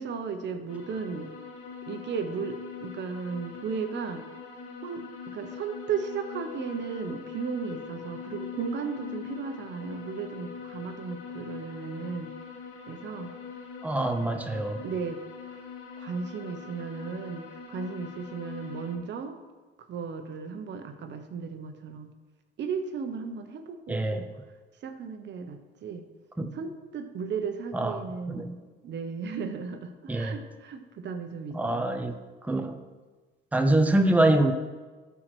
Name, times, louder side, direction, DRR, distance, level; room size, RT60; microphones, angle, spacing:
voice 1, 0.0-1.3 1.9-4.2 4.8-12.3 12.9-13.3 14.8-15.2 15.5-15.6 16.0-19.4 19.8-22.1 22.6-24.3 24.8-26.1 26.5-31.9, right 5 dB, 60° right, 7 dB, 1.1 m, -35 dB
sound 1, 0.7-18.9, left 6 dB, 85° left, 1.9 m, -42 dB
voice 2, 13.8-14.8 23.9-24.2 26.4-26.5 27.7-28.0 28.3-28.5 30.1-30.3 31.5-32.2 32.5-32.8 33.5-34.5, right 1 dB, 5° right, 6 dB, 0.8 m, -24 dB
12.5 x 4.7 x 6.2 m, 1.3 s
cardioid pair, 100°, 21 cm